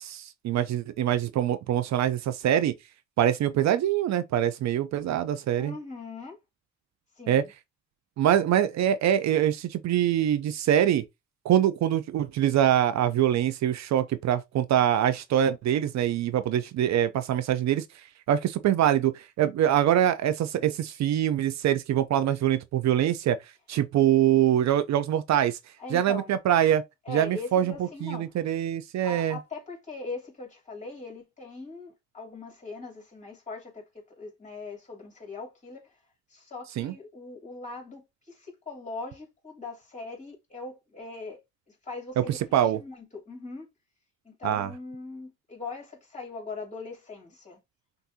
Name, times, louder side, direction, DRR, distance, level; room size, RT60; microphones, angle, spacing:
voice 1, 0.0-2.7 3.2-5.7 7.3-7.4 8.2-11.0 11.4-17.8 18.3-23.4 23.7-25.6 25.9-26.8 27.1-27.7 28.0-29.4 36.8-36.9 42.2-42.3 42.5-42.8 44.4-44.7, right 11 dB, 65° right, 0.5 m, -24 dB
voice 2, 5.6-6.4 7.2-7.5 25.8-26.4 27.0-28.3 29.0-36.0 36.3-41.4 41.7-43.7 44.2-47.6, left 3 dB, 25° left, 2.8 m, -40 dB
5.9 x 2.6 x 2.7 m
cardioid pair, 90°, 30 cm